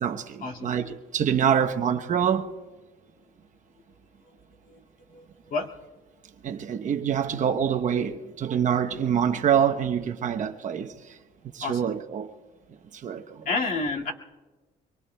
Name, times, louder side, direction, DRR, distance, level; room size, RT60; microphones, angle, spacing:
voice 1, 0.0-2.5 6.4-10.9 11.5-12.4 12.9-13.4, right 8 dB, 45° right, 0.9 m, -25 dB
voice 2, 5.1-5.7 11.6-11.9 13.5-14.1, left 3 dB, 55° left, 2.1 m, -30 dB
24.5 x 22.5 x 2.2 m
cardioid pair, 110°, 17 cm